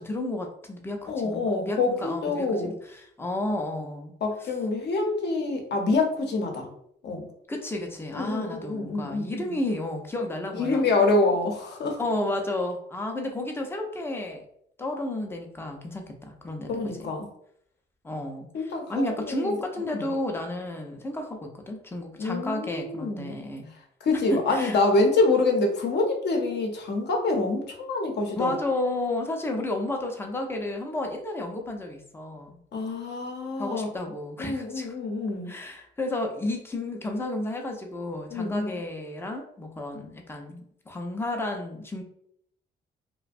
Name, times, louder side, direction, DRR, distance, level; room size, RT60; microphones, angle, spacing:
voice 1, 0.0-4.1 4.4-4.5 7.5-10.8 12.0-14.4 14.8-17.1 18.0-23.7 24.3-24.8 28.4-32.6 33.6-34.9 35.5-42.0, left 1 dB, 10° left, 2 dB, 0.5 m, -32 dB
voice 2, 1.1-2.7 4.2-6.7 7.0-7.3 8.1-9.6 10.5-12.0 16.7-17.3 18.5-19.6 19.9-20.1 22.2-23.4 24.0-28.5 32.7-34.1 34.4-35.5 38.3-38.8, left 3 dB, 60° left, 2 dB, 0.7 m, -26 dB
2.5 x 2.1 x 2.4 m, 0.69 s
cardioid pair, 90°, 20 cm